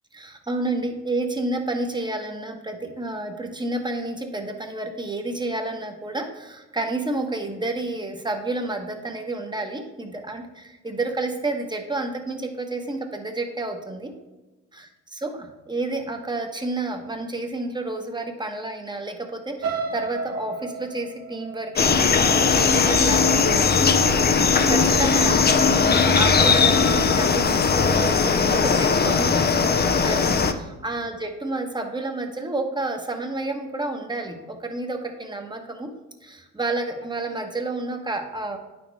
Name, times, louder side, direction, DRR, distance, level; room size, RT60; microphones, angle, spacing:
voice 1, 0.1-14.1 14.7-23.7 24.4-25.6 25.9-35.9 36.2-38.6, right 2 dB, 15° right, 4 dB, 1.2 m, -30 dB
sound 1, 19.6-23.6 24.1-24.4 24.7-24.8, right 4 dB, 55° right, 1.5 m, -33 dB
sound 2, 21.8-30.5, left 5 dB, 35° left, 0.7 m, -19 dB
9.2 x 6.2 x 3.5 m, 1.1 s
cardioid pair, 90°, 30 cm